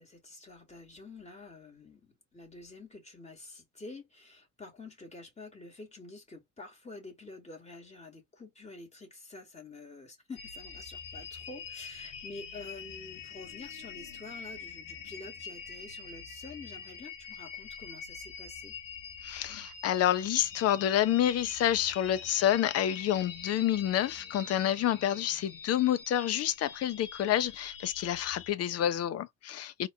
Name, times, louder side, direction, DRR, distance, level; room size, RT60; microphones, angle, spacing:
voice 1, 0.0-18.7, left 3 dB, 20° left, 2.4 m, -48 dB
sound 1, 10.4-28.5, left 6 dB, 60° left, 1.2 m, -45 dB
voice 2, 19.2-29.9, left 11 dB, 45° left, 0.6 m, -28 dB
3.9 x 2.9 x 2.3 m
hypercardioid pair, 70°, 36 cm